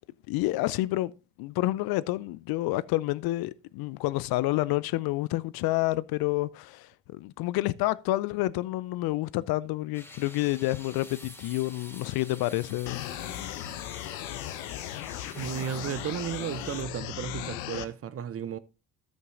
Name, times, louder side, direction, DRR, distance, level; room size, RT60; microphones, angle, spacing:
voice 1, 0.3-1.1 1.4-13.1, left 18 dB, 50° left, 0.5 m, -29 dB
sound 1, 9.9-16.8, left 1 dB, 5° left, 2.7 m, -48 dB
sound 2, 12.9-17.9, left 13 dB, 65° left, 1.0 m, -37 dB
voice 2, 15.3-18.6, right 9 dB, 30° right, 0.6 m, -34 dB
13.5 x 7.9 x 2.5 m
figure-of-eight pair, 50°, 49 cm